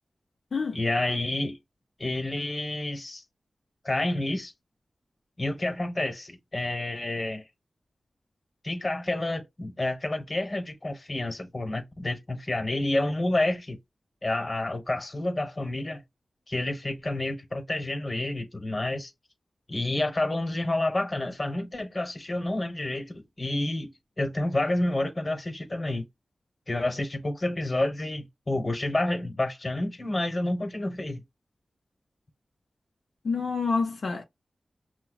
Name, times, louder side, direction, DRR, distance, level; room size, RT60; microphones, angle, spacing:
voice 1, 0.7-1.6 2.0-3.2 3.8-4.5 5.4-7.4 8.6-13.8 14.2-16.0 16.5-19.1 19.7-26.0 26.7-31.2, left 2 dB, 40° left, 1.1 m, -29 dB
voice 2, 33.2-34.2, left 4 dB, 80° left, 0.6 m, -27 dB
5.7 x 2.2 x 2.4 m
cardioid pair, 45°, 0 cm